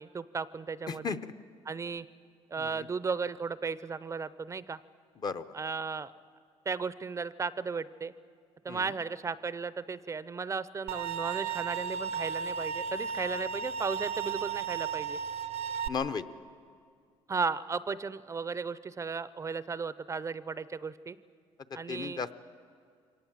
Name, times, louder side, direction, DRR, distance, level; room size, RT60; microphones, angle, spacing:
voice 1, 0.0-1.2 1.7-2.1 2.5-4.8 5.5-6.1 6.7-8.1 8.6-15.2 17.3-21.2 21.7-22.2, right 5 dB, 25° right, 16 dB, 0.5 m, -35 dB
voice 2, 0.9-1.3 2.6-2.9 5.2-5.4 8.7-8.9 15.9-16.2 21.9-22.3, left 5 dB, 35° left, 11 dB, 0.7 m, -35 dB
sound 1, 10.9-15.9, right 7 dB, 70° right, 0.7 m, -34 dB
23.5 x 18.0 x 7.4 m, 2.2 s
cardioid pair, 105°, 11 cm